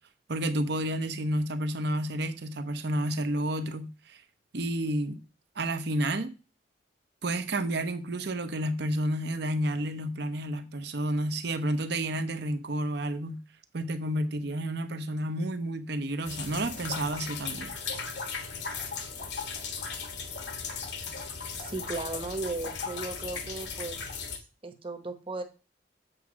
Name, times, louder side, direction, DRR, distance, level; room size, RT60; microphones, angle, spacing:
voice 1, 0.3-4.2 4.5-5.2 5.6-6.3 7.2-13.4 13.7-17.7, right 1 dB, 65° right, 0.8 m, -30 dB
sound 1, 16.2-24.4, left 5 dB, 65° left, 1.3 m, -37 dB
voice 2, 21.6-24.0 24.6-25.4, right 3 dB, 30° right, 1.0 m, -36 dB
7.9 x 3.6 x 6.2 m
head